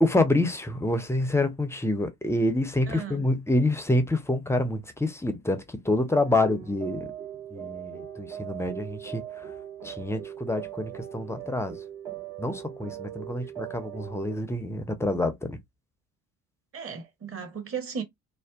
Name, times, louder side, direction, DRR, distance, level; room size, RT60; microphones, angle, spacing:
voice 1, 0.0-7.1 7.5-9.2 9.8-11.8 12.4-15.6, left 1 dB, 5° left, 0.4 m, -27 dB
voice 2, 2.9-3.2 16.7-18.0, right 6 dB, 35° right, 0.9 m, -35 dB
sound 1, 6.2-14.4, right 10 dB, 70° right, 1.4 m, -40 dB
2.5 x 2.1 x 2.3 m
figure-of-eight pair, 55°, 38 cm